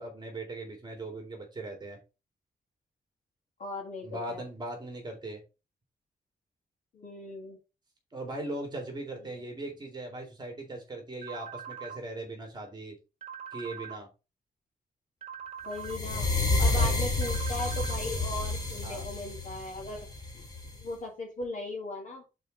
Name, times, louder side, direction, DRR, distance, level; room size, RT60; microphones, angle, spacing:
voice 1, 0.0-2.0 4.0-5.4 8.1-12.9 13.5-14.1 16.7-17.0 18.8-19.1, right 2 dB, 25° right, 2 dB, 2.5 m, -39 dB
voice 2, 3.6-4.5 6.9-7.6 9.2-9.4 15.6-16.3 16.6-20.4 20.7-22.2, left 2 dB, 55° left, 0 dB, 2.7 m, -38 dB
sound 1, 11.2-12.0 13.2-14.0 15.2-16.0 17.2-18.0, right 8 dB, 45° right, 1.7 m, -42 dB
sound 2, 15.8-20.8, left 2 dB, 25° left, 1.9 m, -29 dB
5.4 x 4.4 x 5.2 m, 0.29 s
wide cardioid pair, 160°, 16 cm